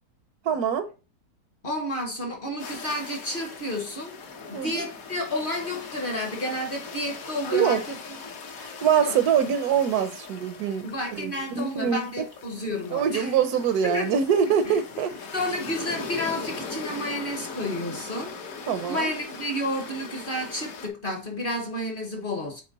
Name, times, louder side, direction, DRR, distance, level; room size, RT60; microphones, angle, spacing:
voice 1, 0.4-0.9 4.5-4.8 7.5-7.8 8.6-12.3 12.9-15.1 18.7-19.1, right 8 dB, 75° right, 1.1 m, -24 dB
voice 2, 1.6-4.1 4.5-8.0 9.0-9.2 10.8-13.4 13.8-14.1 14.6-14.8 15.1-18.3 18.9-22.6, left 1 dB, 35° left, 1.0 m, -31 dB
sound 1, 2.6-20.9, left 4 dB, 60° left, 1.4 m, -40 dB
8.3 x 3.3 x 4.0 m
omnidirectional pair, 1.8 m